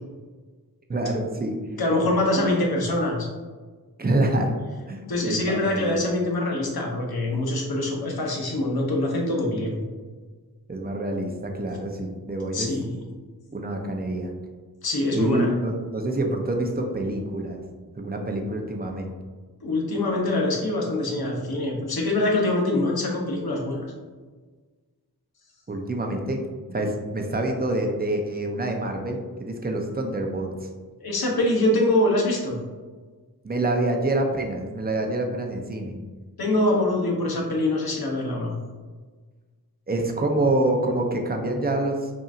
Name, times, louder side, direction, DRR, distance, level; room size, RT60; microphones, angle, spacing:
voice 1, 0.9-1.6 2.3-2.5 4.0-4.6 4.9-6.0 10.7-12.7 13.5-14.3 15.1-17.6 18.0-19.1 25.7-26.4 26.7-30.7 33.4-36.0 39.9-42.1, right 1 dB, 25° right, 2 dB, 0.6 m, -26 dB
voice 2, 1.8-3.3 5.1-9.8 12.5-12.9 14.8-15.5 19.6-23.9 31.0-32.6 36.4-38.5, left 1 dB, 75° left, -1 dB, 1.0 m, -24 dB
5.5 x 2.7 x 2.5 m, 1.4 s
wide cardioid pair, 80°, 37 cm